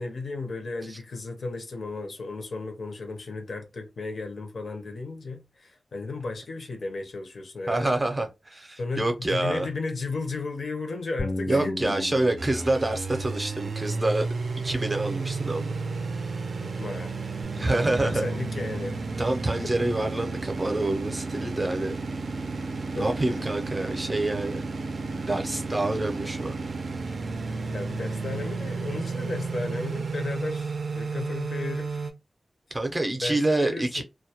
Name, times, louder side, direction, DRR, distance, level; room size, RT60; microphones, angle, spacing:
voice 1, 0.0-8.1 8.8-12.1 16.6-17.2 18.0-19.0 19.6-19.7 21.6-21.9 22.9-23.4 23.8-23.9 27.7-32.0 33.2-34.0, left 3 dB, 80° left, 0.5 m, -34 dB
voice 2, 7.7-9.7 11.5-14.3 14.6-15.7 17.5-18.3 19.2-22.0 23.0-24.6 25.1-26.5 32.7-34.0, right 2 dB, 30° right, 0.5 m, -27 dB
Bass guitar, 11.2-17.4, left 1 dB, 30° left, 0.3 m, -39 dB
sound 1, 12.4-32.1, right 4 dB, 85° right, 0.4 m, -32 dB
2.2 x 2.0 x 2.7 m
wide cardioid pair, 110°, 0 cm